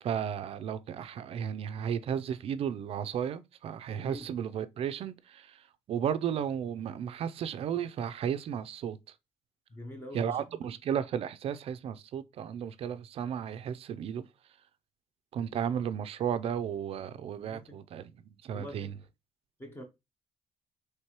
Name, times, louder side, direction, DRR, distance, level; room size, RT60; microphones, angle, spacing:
voice 1, 0.0-9.0 10.1-14.2 15.3-18.9, right 8 dB, 55° right, 0.3 m, -34 dB
voice 2, 9.7-10.4 17.4-17.7 18.5-18.9 19.6-19.8, left 1 dB, 20° left, 0.7 m, -44 dB
4.6 x 3.2 x 2.9 m
cardioid pair, 155°, 12 cm